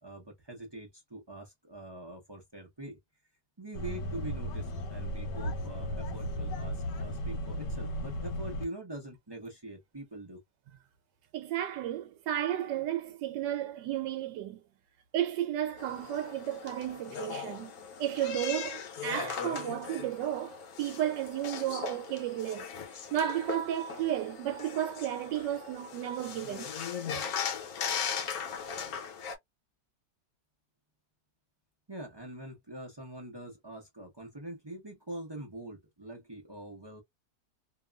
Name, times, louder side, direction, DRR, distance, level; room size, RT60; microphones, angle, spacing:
voice 1, 0.0-3.0 3.6-10.4 31.9-37.0, right 1 dB, 35° right, 0.4 m, -44 dB
sound 1, 3.7-8.6, equal, 80° left, 1.4 m, -35 dB
voice 2, 11.3-14.6 15.1-17.7 18.0-22.7 23.1-26.7, right 11 dB, 80° right, 1.2 m, -33 dB
sound 2, 15.8-29.3, left 7 dB, 65° left, 1.1 m, -39 dB
2.9 x 2.3 x 2.2 m
omnidirectional pair, 1.8 m